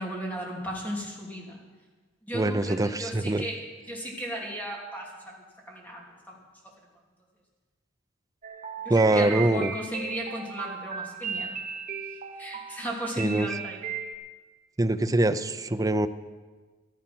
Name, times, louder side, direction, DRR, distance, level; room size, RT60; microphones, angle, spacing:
voice 1, 0.0-1.6 2.2-6.7 8.8-11.6 12.4-13.8, equal, 10° left, -3 dB, 3.0 m, -36 dB
voice 2, 2.3-3.4 8.9-9.7 13.2-13.5 14.8-16.1, right 2 dB, 15° right, 10 dB, 0.5 m, -24 dB
sound 1, 8.4-14.1, right 6 dB, 40° right, 1.1 m, -36 dB
14.5 x 13.0 x 6.1 m, 1.4 s
head